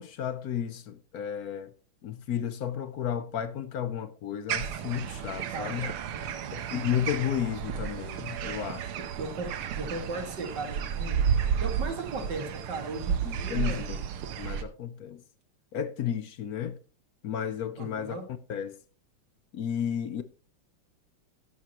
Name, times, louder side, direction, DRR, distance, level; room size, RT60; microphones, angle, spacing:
voice 1, 0.0-1.7 2.0-5.9 6.5-8.9 13.2-14.0 14.4-15.2 15.7-16.8 17.2-18.2 18.5-18.8 19.5-20.2, left 9 dB, 65° left, 0.9 m, -33 dB
sound 1, 4.5-14.6, right 7 dB, 90° right, 1.9 m, -32 dB
voice 2, 5.5-6.6 9.0-11.2 11.6-13.9 17.8-18.2, right 3 dB, 55° right, 2.6 m, -37 dB
12.5 x 11.0 x 3.0 m
omnidirectional pair, 2.4 m